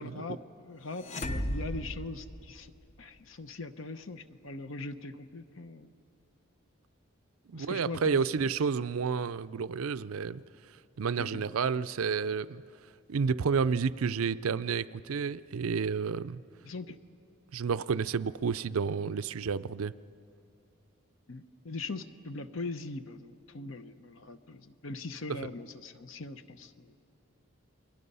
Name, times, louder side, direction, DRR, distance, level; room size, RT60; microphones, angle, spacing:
voice 1, 0.0-2.7 3.0-5.9 7.5-8.5 11.2-11.4 16.6-17.0 21.3-26.9, left 3 dB, 65° left, 11 dB, 0.9 m, -41 dB
sound 1, 1.0-3.0, equal, 30° left, 0.8 m, -36 dB
voice 2, 7.5-10.4 11.0-12.6 13.1-16.4 17.5-19.9, right 5 dB, 80° right, 16 dB, 0.5 m, -30 dB
29.0 x 22.0 x 5.5 m, 2.7 s
head